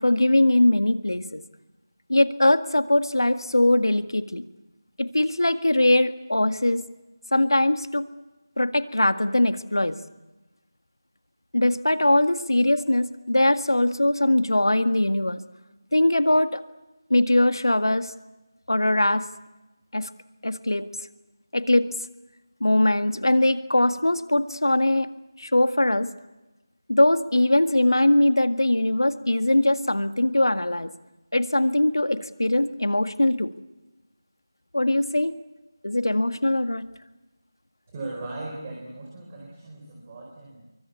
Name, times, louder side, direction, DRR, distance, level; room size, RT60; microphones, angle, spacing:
voice 1, 0.0-1.4 2.1-4.4 5.0-6.8 7.3-8.1 8.6-10.0 11.5-15.4 15.9-16.6 17.1-18.1 18.7-19.2 19.9-20.1 20.4-20.9 21.5-21.9 22.6-25.1 25.4-26.1 26.9-30.9 31.3-33.5 34.7-35.3 35.8-36.9, left 1 dB, 80° left, 9 dB, 1.7 m, -21 dB
voice 2, 37.9-40.7, right 2 dB, 20° right, 0 dB, 4.5 m, -38 dB
26.5 x 23.0 x 8.3 m, 1.1 s
figure-of-eight pair, 165°, 2 cm